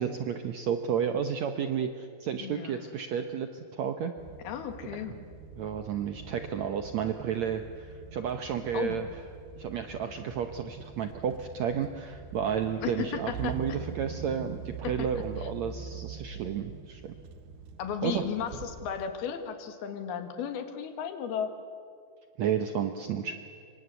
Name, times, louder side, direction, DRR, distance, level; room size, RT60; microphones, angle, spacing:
voice 1, 0.0-4.1 4.9-5.0 5.6-9.1 9.6-17.1 18.0-18.3 22.4-23.3, right 8 dB, 75° right, 7 dB, 1.7 m, -32 dB
voice 2, 2.4-2.8 4.4-5.1 8.7-9.0 12.8-13.8 14.8-15.2 17.8-21.5, left 8 dB, 80° left, 7 dB, 3.7 m, -35 dB
sound 1, 4.2-19.1, right 5 dB, 90° right, 3.6 m, -44 dB
26.0 x 24.0 x 8.1 m, 2.3 s
omnidirectional pair, 4.4 m